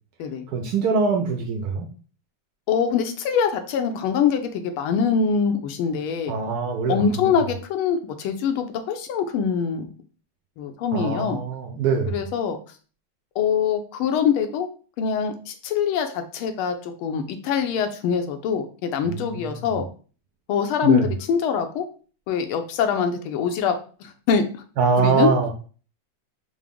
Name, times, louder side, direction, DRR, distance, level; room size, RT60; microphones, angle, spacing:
voice 1, 0.5-1.9 6.3-7.4 10.9-12.1 19.0-19.8 20.8-21.0 24.8-25.5, right 5 dB, 85° right, 2 dB, 0.8 m, -23 dB
voice 2, 2.7-6.3 6.9-9.9 10.6-11.4 12.1-12.6 13.4-14.7 15.0-19.8 20.5-21.8 22.3-23.7 24.0-24.5 25.0-25.3, left 7 dB, 90° left, 7 dB, 1.5 m, -24 dB
4.8 x 2.0 x 3.5 m, 0.39 s
omnidirectional pair, 2.3 m